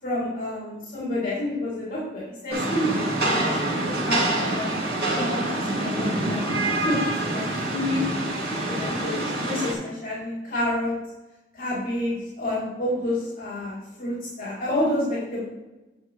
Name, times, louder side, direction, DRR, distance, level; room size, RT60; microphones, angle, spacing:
voice 1, 0.0-4.7 5.1-6.5 6.8-7.0 7.3-7.4 7.7-8.0 8.7-10.9 11.5-15.4, left 1 dB, 45° left, -7 dB, 3.4 m, -29 dB
Rain, 2.5-9.7, right 1 dB, 55° right, 2.8 m, -26 dB
11.0 x 7.2 x 3.3 m, 1.1 s
head